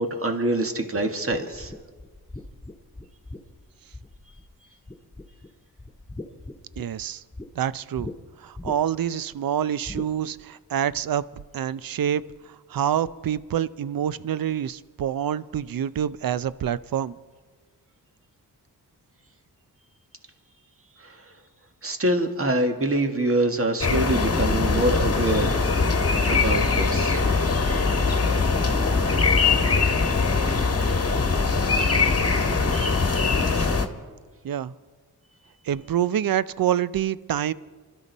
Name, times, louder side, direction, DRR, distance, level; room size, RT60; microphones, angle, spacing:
voice 1, 0.0-1.7 21.0-21.2 21.8-25.7 26.3-27.3, right 1 dB, 35° right, 5 dB, 1.8 m, -25 dB
sound 1, 1.3-4.5 4.9-5.5 5.8-7.5 8.0-8.1 8.5-9.1 9.8-10.1, left 2 dB, 5° left, 2.3 m, -39 dB
voice 2, 6.8-7.2 7.6-8.1 8.4-11.2 11.5-17.2 33.5-33.7 34.4-34.7 35.6-37.5, right 10 dB, 60° right, 17 dB, 0.6 m, -27 dB
sound 2, 23.8-33.9, left 4 dB, 40° left, 1.5 m, -22 dB
26.5 x 13.0 x 4.1 m, 1.4 s
cardioid pair, 60°, 39 cm